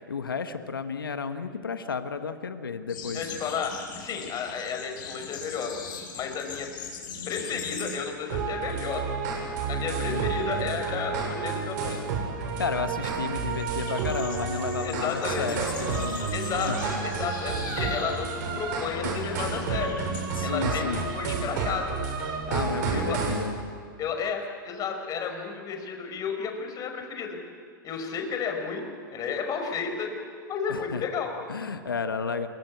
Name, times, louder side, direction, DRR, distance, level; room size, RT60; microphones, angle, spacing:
voice 1, 0.1-3.3 10.1-10.3 12.4-16.3 16.7-16.8 19.0-19.3 20.3-21.1 22.5-23.5 30.7-31.1 31.5-32.5, left 5 dB, 85° left, 9 dB, 1.4 m, -32 dB
sound 1, 2.9-8.3 8.5-8.9 9.2-20.3, left 5 dB, 65° left, 7.7 m, -41 dB
voice 2, 3.1-5.7 6.1-6.7 7.3-9.1 9.7-12.0 14.8-15.5 16.3-20.0 20.4-22.0 22.9-23.2 24.0-27.4 27.8-28.8 29.1-30.1 30.5-31.3, left 6 dB, 35° left, 4 dB, 5.3 m, -32 dB
sound 2, 8.3-23.5, right 5 dB, 55° right, 7.4 m, -30 dB
27.5 x 23.5 x 8.6 m, 2.2 s
hypercardioid pair, 100°, 11 cm